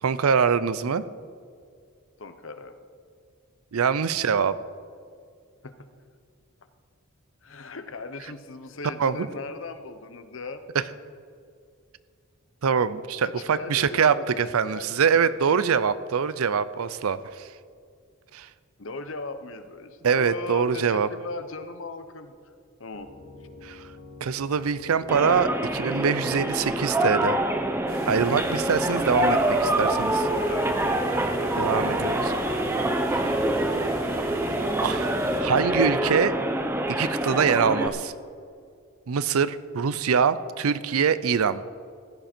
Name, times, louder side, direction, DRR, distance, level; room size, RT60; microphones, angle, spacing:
voice 1, 0.0-1.0 3.7-4.5 9.0-9.3 12.6-17.5 18.3-18.5 20.0-21.1 23.6-23.8 24.2-27.4 28.1-30.3 31.6-32.3 33.1-33.4 34.8-36.3 36.9-38.1 39.1-41.6, right 6 dB, 85° right, 15 dB, 0.5 m, -24 dB
voice 2, 2.2-2.8 5.6-5.9 7.4-10.6 13.2-15.6 18.8-22.3 22.8-23.1 30.5-31.7, left 3 dB, 65° left, 9 dB, 0.9 m, -38 dB
Piano, 22.9-35.9, left 3 dB, 90° left, 2.0 m, -45 dB
sound 1, 25.1-37.9, right 1 dB, 10° right, 0.7 m, -25 dB
sound 2, 27.9-35.4, right 1 dB, 65° right, 2.3 m, -41 dB
15.5 x 11.5 x 4.4 m, 2.3 s
head